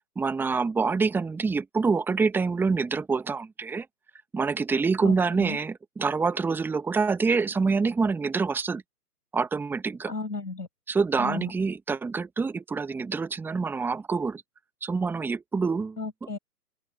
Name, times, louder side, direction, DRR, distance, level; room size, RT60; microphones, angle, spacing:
voice 1, 0.1-3.9 4.3-8.8 9.3-10.1 10.9-14.4 14.8-16.0, right 4 dB, 5° right, 1.4 m, -26 dB
voice 2, 5.0-5.6 10.1-10.7 11.2-11.5 16.0-16.4, left 3 dB, 80° left, 6.5 m, -34 dB
open air
figure-of-eight pair, 130°, 48 cm